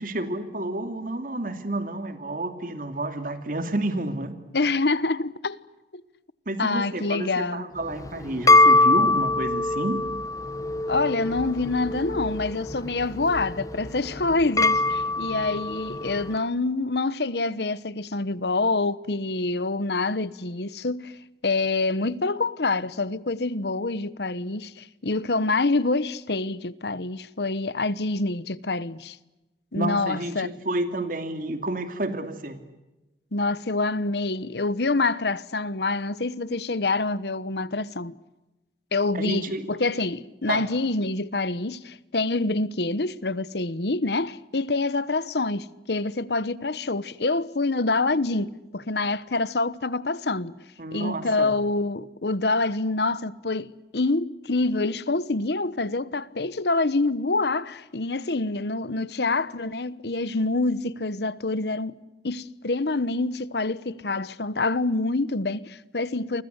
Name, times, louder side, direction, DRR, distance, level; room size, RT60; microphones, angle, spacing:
voice 1, 0.0-4.3 6.5-10.0 29.8-32.6 39.1-39.7 40.5-40.6 50.8-51.5, right 1 dB, 50° right, 2.5 m, -30 dB
voice 2, 4.5-5.6 5.9-6.0 6.6-7.6 10.9-21.1 21.4-29.2 29.7-30.5 33.3-38.1 38.9-50.5 50.9-61.9 62.2-66.4, left 3 dB, 70° left, 1.1 m, -26 dB
sound 1, 7.8-16.3, left 2 dB, 20° left, 0.9 m, -23 dB
29.5 x 24.5 x 8.1 m
head